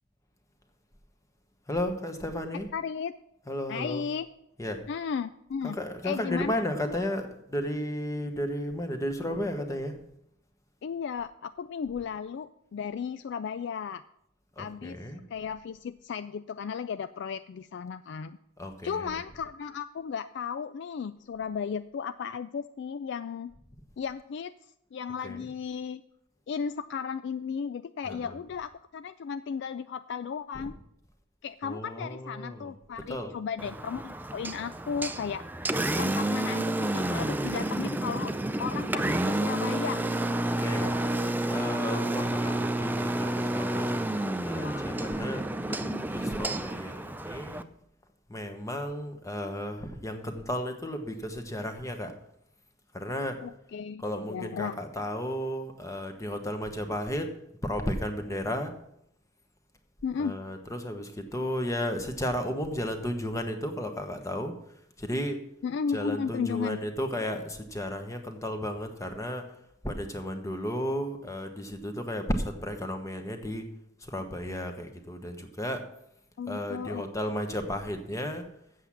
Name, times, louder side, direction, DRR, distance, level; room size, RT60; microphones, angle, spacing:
voice 1, 1.7-2.7 3.5-4.0 4.6-4.8 5.6-10.0 14.6-15.2 18.6-19.2 25.2-25.5 28.0-28.4 31.6-32.7 33.1-33.3 40.6-41.0 41.5-45.5 46.1-47.6 48.3-52.1 52.9-53.4 54.0-57.3 57.6-58.7 60.2-64.5 65.0-65.4 65.9-69.5 69.8-73.7 74.0-75.8 76.5-78.4, equal, 15° left, 6 dB, 1.1 m, -33 dB
voice 2, 2.7-3.1 3.7-4.3 4.9-5.8 6.0-6.5 6.8-7.0 10.8-14.0 14.6-15.0 15.3-18.4 18.8-23.5 24.0-24.5 24.9-26.0 26.5-30.7 31.4-35.4 36.0-38.3 38.6-40.0 40.5-41.0 44.6-44.9 45.7-46.0 53.4-54.0 54.3-54.8 60.0-60.4 65.6-66.8 76.4-77.4, left 6 dB, 60° left, 13 dB, 0.3 m, -35 dB
Engine, 33.6-47.6, right 1 dB, 10° right, 0.4 m, -30 dB
8.0 x 7.4 x 8.4 m, 0.77 s
head